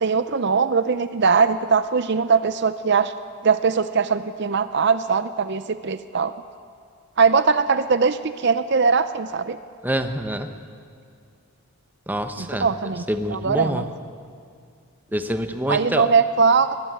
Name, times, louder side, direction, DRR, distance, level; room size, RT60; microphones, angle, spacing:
voice 1, 0.0-3.1 3.4-6.3 7.2-9.6 12.4-13.0 13.3-13.8 15.7-16.7, right 5 dB, 50° right, 12 dB, 0.6 m, -20 dB
voice 2, 9.8-10.5 12.1-12.7 13.1-13.9 15.1-16.1, equal, 10° right, 7 dB, 1.1 m, -26 dB
23.5 x 19.0 x 9.4 m, 2.2 s
head